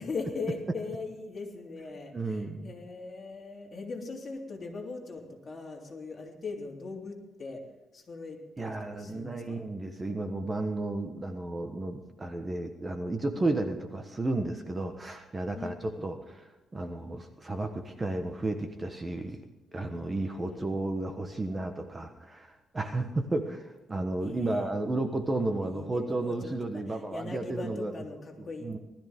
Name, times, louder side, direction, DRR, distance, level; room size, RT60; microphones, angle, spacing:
voice 1, 0.0-7.6 7.9-9.6 13.3-13.5 15.5-16.1 20.4-20.7 24.2-24.7 25.2-28.7, left 3 dB, 35° left, 0 dB, 3.3 m, -40 dB
voice 2, 2.1-2.7 8.6-19.4 19.7-27.9 28.6-28.8, right 2 dB, 20° right, 6 dB, 1.2 m, -33 dB
19.5 x 13.5 x 3.7 m, 1.1 s
cardioid pair, 120°, 0 cm